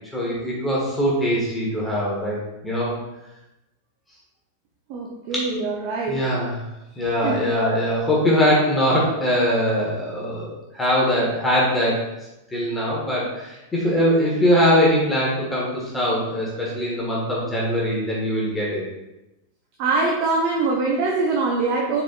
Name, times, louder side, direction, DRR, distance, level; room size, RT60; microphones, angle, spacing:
voice 1, 0.1-3.0 5.3-5.4 6.1-6.6 7.0-12.1 12.5-18.8, equal, 10° left, -5 dB, 1.5 m, -22 dB
voice 2, 4.9-6.2 7.2-7.4 19.8-22.0, right 3 dB, 45° right, -1 dB, 0.7 m, -23 dB
5.0 x 4.5 x 2.4 m, 0.95 s
figure-of-eight pair, 90°, 0 cm